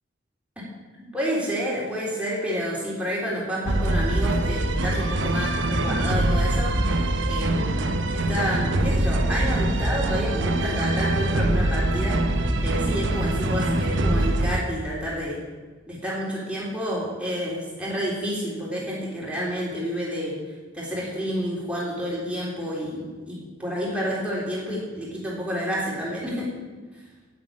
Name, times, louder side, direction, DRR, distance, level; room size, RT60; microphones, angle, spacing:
voice 1, 1.0-6.7 7.3-7.8 8.1-15.4 15.9-20.3 20.7-26.5, equal, 5° right, -7 dB, 3.8 m, -29 dB
sound 1, 3.7-14.6, right 1 dB, 70° right, 1.0 m, -23 dB
9.5 x 9.2 x 8.7 m, 1.3 s
head